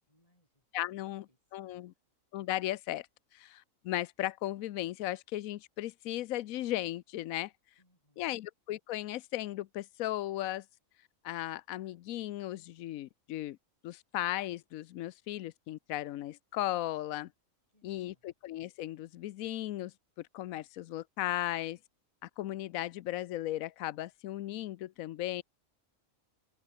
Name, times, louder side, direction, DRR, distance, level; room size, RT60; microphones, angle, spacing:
voice 1, 0.0-0.7 0.9-1.4 1.6-2.0 7.8-8.3 17.7-18.2, left 1 dB, 25° left, 8.1 m, -73 dB
voice 2, 0.7-1.3 1.5-1.9 2.3-3.1 3.3-7.5 8.2-10.6 11.2-13.6 13.8-17.3 17.8-19.9 20.3-21.8 22.2-25.4, left 14 dB, 85° left, 1.1 m, -36 dB
omnidirectional pair, 1.4 m